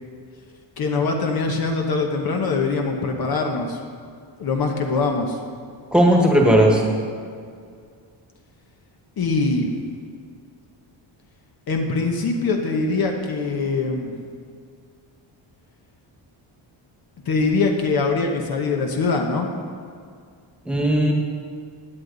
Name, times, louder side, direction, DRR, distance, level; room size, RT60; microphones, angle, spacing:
voice 1, 0.8-3.8 4.4-5.4 9.2-9.7 11.7-14.1 17.2-19.5, left 3 dB, 50° left, 2 dB, 1.1 m, -23 dB
voice 2, 5.9-6.8 20.6-21.1, equal, ahead, -1 dB, 1.5 m, -16 dB
17.0 x 9.3 x 4.0 m, 2.2 s
wide cardioid pair, 175°, 47 cm